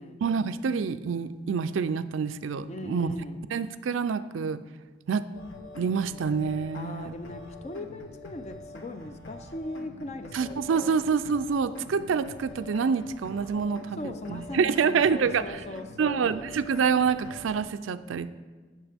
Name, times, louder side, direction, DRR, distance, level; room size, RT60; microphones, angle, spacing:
voice 1, 0.2-3.1 3.5-4.6 5.1-5.3 5.8-7.1 10.3-15.6 16.0-18.3, right 6 dB, 85° right, 13 dB, 0.4 m, -27 dB
voice 2, 2.7-3.4 6.7-11.0 14.0-16.5, left 2 dB, 35° left, 9 dB, 0.5 m, -39 dB
sound 1, 5.3-17.6, left 2 dB, 80° left, 1.1 m, -45 dB
16.0 x 6.6 x 3.5 m, 1.4 s
head